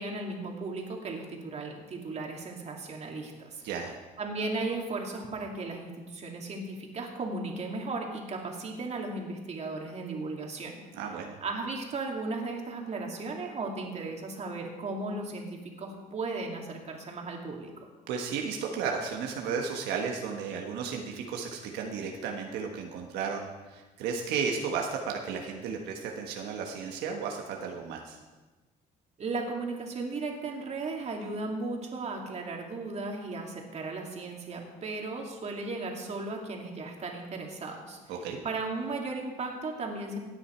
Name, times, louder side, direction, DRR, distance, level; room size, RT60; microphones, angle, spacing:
voice 1, 0.0-3.6 4.2-10.8 11.4-17.7 29.2-38.0 38.4-40.2, right 3 dB, 40° right, 1 dB, 2.5 m, -36 dB
voice 2, 10.9-11.3 18.1-28.2 38.1-38.4, right 6 dB, 90° right, 1 dB, 1.4 m, -34 dB
17.0 x 9.1 x 4.5 m, 1.2 s
cardioid pair, 110°, 17 cm